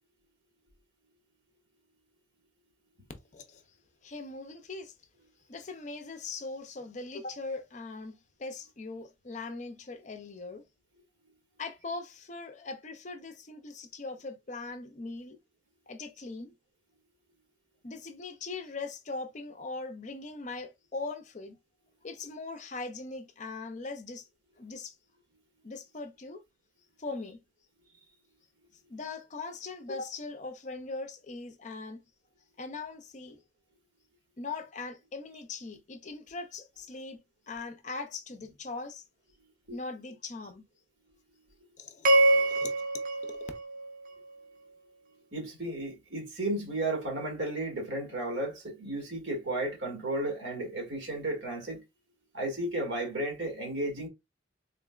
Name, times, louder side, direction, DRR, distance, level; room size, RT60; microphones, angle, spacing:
voice 1, 3.3-3.6 4.0-4.9 5.5-10.6 11.6-15.4 15.9-16.5 17.8-21.6 22.0-24.3 24.6-24.9 25.6-26.4 27.0-27.4 28.9-32.0 32.6-33.4 34.4-37.2 37.5-39.0 39.7-40.6 41.8-42.7, left 3 dB, 40° left, 0.5 m, -40 dB
sound 1, 42.0-44.4, right 1 dB, 45° right, 0.5 m, -26 dB
voice 2, 45.3-51.8 52.3-54.1, right 1 dB, 70° right, 1.6 m, -33 dB
3.7 x 3.2 x 2.3 m
head